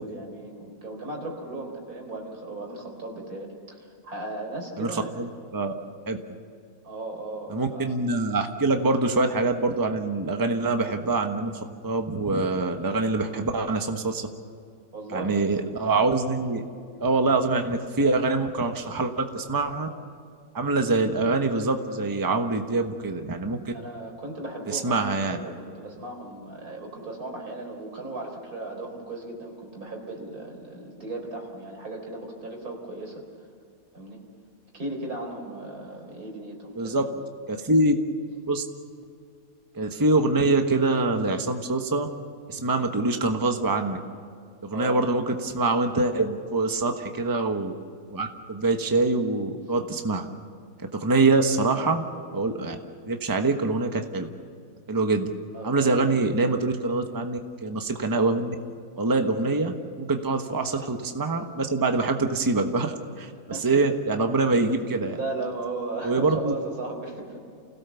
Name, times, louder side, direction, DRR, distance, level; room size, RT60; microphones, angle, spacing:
voice 1, 0.0-5.3 6.8-8.0 14.9-15.4 23.7-33.2 33.9-34.2 34.7-37.1 44.7-45.1 55.5-56.2 59.4-59.5 63.5-63.7 64.8-67.4, right 2 dB, 65° right, 1 dB, 4.5 m, -36 dB
voice 2, 4.8-5.7 6.1-6.2 7.5-11.5 11.8-14.3 15.1-16.6 17.0-19.9 20.5-23.7 24.7-25.4 36.8-37.0 37.5-37.9 38.5-38.6 39.7-42.1 42.5-44.0 44.6-47.7 48.1-50.3 51.0-52.0 52.3-52.8 53.1-54.3 54.9-55.3 55.6-58.5 59.0-65.2 66.0-66.5, right 3 dB, 15° right, 5 dB, 1.1 m, -24 dB
29.0 x 17.0 x 7.0 m, 2.3 s
omnidirectional pair, 1.7 m